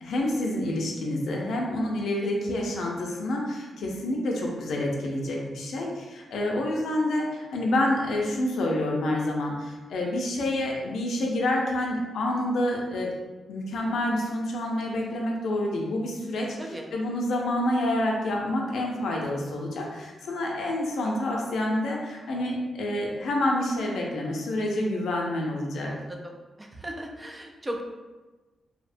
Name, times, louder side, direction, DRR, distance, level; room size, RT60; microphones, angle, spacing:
voice 1, 0.0-13.1 13.5-16.6 16.9-25.9, left 1 dB, 80° left, -1 dB, 0.5 m, -28 dB
voice 2, 25.9-26.3 26.6-27.8, right 1 dB, 20° right, 1 dB, 0.4 m, -37 dB
2.8 x 2.0 x 2.5 m, 1.2 s
cardioid pair, 95°, 0 cm